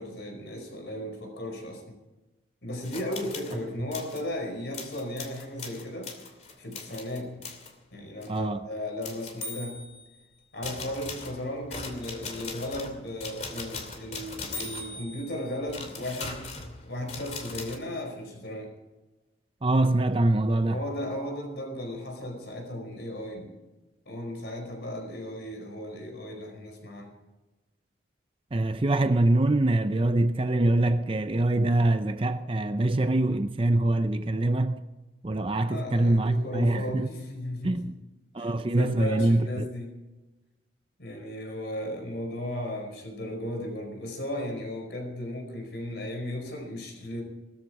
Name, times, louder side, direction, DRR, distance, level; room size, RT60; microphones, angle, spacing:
voice 1, 0.0-2.0 2.6-6.1 6.6-7.4 7.9-9.8 10.5-16.4 16.8-18.7 20.7-23.5 24.0-27.1 35.5-37.9 38.4-39.9 41.0-47.2, left 1 dB, 65° left, 4.8 m, -35 dB
sound 1, 2.8-3.6 3.9-4.2 4.7-7.7 8.2-8.4 9.0-10.2 10.6-17.8, left 3 dB, 35° left, 2.7 m, -40 dB
voice 2, 8.3-8.7 19.6-20.8 28.5-34.8 35.2-37.1 37.6-37.9 38.3-39.7, right 2 dB, 30° right, 0.5 m, -24 dB
19.5 x 14.0 x 4.8 m
head